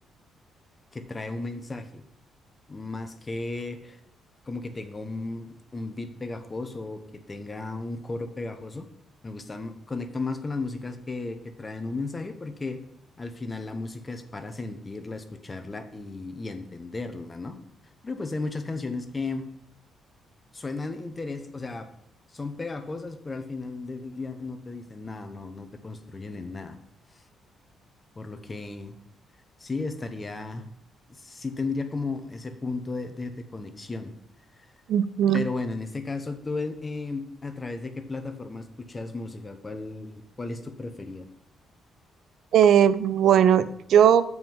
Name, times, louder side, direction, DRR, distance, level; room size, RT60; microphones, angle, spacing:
voice 1, 0.9-2.0 2.7-4.0 4.4-8.9 9.2-12.8 13.2-17.6 18.0-19.5 20.5-21.9 22.3-26.8 27.1-27.2 28.2-28.9 29.6-30.7 31.1-34.1 34.6-34.7 35.3-41.3, left 3 dB, 25° left, 8 dB, 0.9 m, -34 dB
voice 2, 34.9-35.4 42.5-44.2, right 9 dB, 70° right, 13 dB, 0.4 m, -18 dB
7.5 x 4.7 x 5.5 m, 0.72 s
cardioid pair, 90°, 0 cm